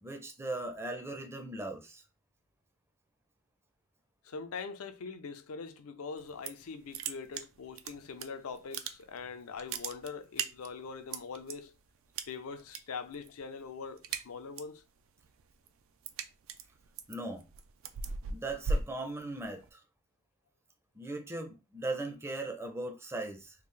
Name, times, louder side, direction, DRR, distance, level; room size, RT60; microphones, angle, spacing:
voice 1, 0.0-2.0 17.1-17.4 18.3-19.8 21.0-23.5, right 2 dB, 10° right, 0.5 m, -38 dB
voice 2, 4.2-11.8 12.3-14.8, left 5 dB, 70° left, 0.5 m, -43 dB
sound 1, 6.2-6.7 6.9-8.3 8.6-9.2 9.5-11.5 12.2-12.8 13.1-13.4 13.7-14.8 15.2-19.7, right 4 dB, 60° right, 0.4 m, -37 dB
3.6 x 2.4 x 3.2 m
head